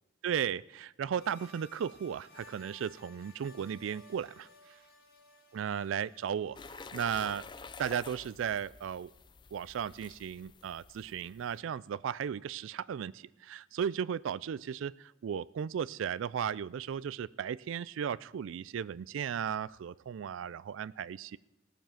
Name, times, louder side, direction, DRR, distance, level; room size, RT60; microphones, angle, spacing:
voice 1, 0.2-4.8 5.5-6.6 6.9-7.5 7.8-9.1 9.5-21.4, right 8 dB, 80° right, 18 dB, 0.3 m, -35 dB
sound 1, 1.2-7.0, left 2 dB, 50° left, 2.0 m, -57 dB
sound 2, 6.6-11.6, left 4 dB, 25° left, 0.4 m, -50 dB
16.5 x 7.1 x 5.8 m, 1.0 s
head